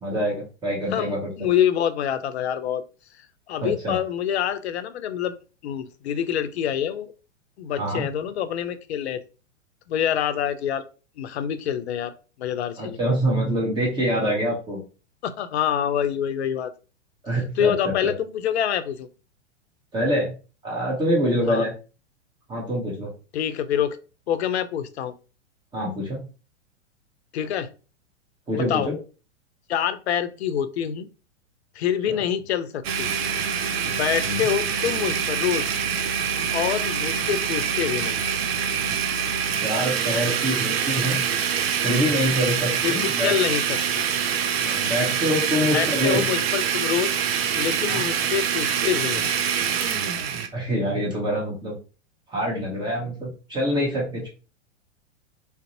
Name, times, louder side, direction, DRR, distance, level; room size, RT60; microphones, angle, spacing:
voice 1, 0.0-1.3 3.6-4.0 7.8-8.1 12.8-14.8 17.2-17.7 18.0-18.1 19.9-20.3 20.6-21.7 22.5-23.1 25.7-26.2 28.5-28.9 32.1-32.2 34.3-34.4 39.6-41.2 41.8-43.3 44.6-46.2 47.9-48.0 50.5-51.8 52.3-54.3, equal, 10° right, -3 dB, 0.7 m, -25 dB
voice 2, 0.9-2.8 3.5-5.4 5.6-7.1 7.6-9.2 9.9-10.8 11.2-12.1 12.4-13.0 15.2-16.7 17.6-19.1 21.5-21.7 23.3-24.0 24.3-25.1 27.3-27.7 28.5-28.9 29.7-31.1 31.8-33.1 33.8-35.7 36.5-38.2 42.8-44.0 45.7-47.1 47.6-49.3, left 9 dB, 60° left, 11 dB, 0.5 m, -26 dB
Domestic sounds home sounds, 32.8-50.5, right 7 dB, 55° right, 0.5 m, -25 dB
2.5 x 2.0 x 2.7 m, 0.34 s
figure-of-eight pair, 105°, 37 cm